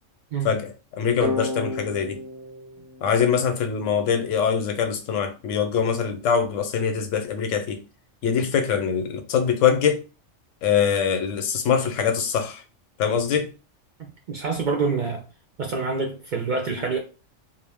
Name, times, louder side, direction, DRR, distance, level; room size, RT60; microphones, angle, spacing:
voice 1, 0.4-2.2 3.0-7.8 8.2-10.0 10.6-12.6 13.0-13.5, left 7 dB, 90° left, 0.9 m, -23 dB
sound 1, 1.2-4.0, left 2 dB, 15° right, 0.6 m, -32 dB
voice 2, 14.3-15.3 15.6-17.0, right 4 dB, 60° right, 0.5 m, -26 dB
2.4 x 2.0 x 3.4 m
omnidirectional pair, 1.3 m